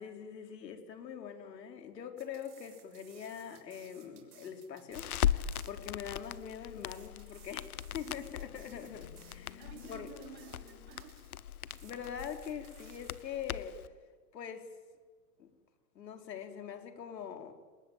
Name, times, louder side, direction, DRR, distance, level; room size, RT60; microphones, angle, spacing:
voice 1, 0.0-9.6 9.9-10.1 11.8-13.8 14.3-14.7 15.4-15.5 15.9-17.5, left 8 dB, 80° left, 5 dB, 4.3 m, -43 dB
sound 1, 2.2-13.2, right 9 dB, 60° right, 6.8 m, -61 dB
Crackle, 4.9-13.9, left 10 dB, 60° left, 1.1 m, -39 dB
Motorcycle, 8.1-11.4, left 10 dB, 30° left, 1.6 m, -56 dB
voice 2, 9.6-11.3 13.0-13.3, right 7 dB, 85° right, 4 dB, 4.8 m, -53 dB
28.5 x 19.5 x 9.1 m, 1.5 s
supercardioid pair, 180°, 49 cm